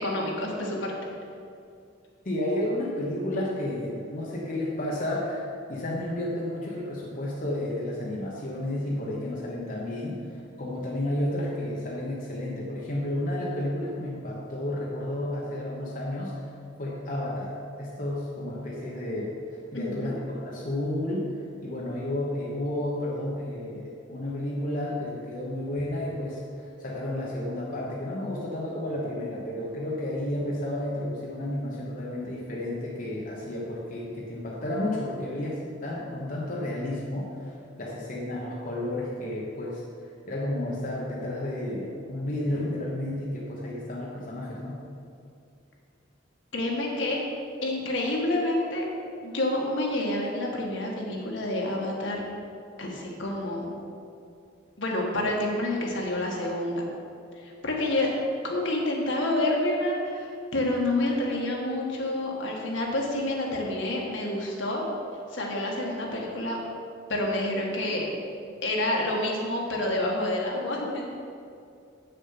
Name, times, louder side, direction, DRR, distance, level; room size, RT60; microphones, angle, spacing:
voice 1, 0.0-0.9 19.7-20.1 46.5-47.2 47.6-48.8 49.2-52.2 52.8-53.7 54.8-56.8 57.4-58.1 58.4-64.8 65.3-66.6 67.1-68.1 68.6-71.0, left 1 dB, 70° left, -2 dB, 1.7 m, -28 dB
voice 2, 2.2-16.5 16.8-19.3 19.7-21.3 21.6-39.8 40.3-44.8, left 1 dB, 45° left, -4 dB, 1.1 m, -32 dB
8.2 x 6.8 x 5.8 m, 2.5 s
head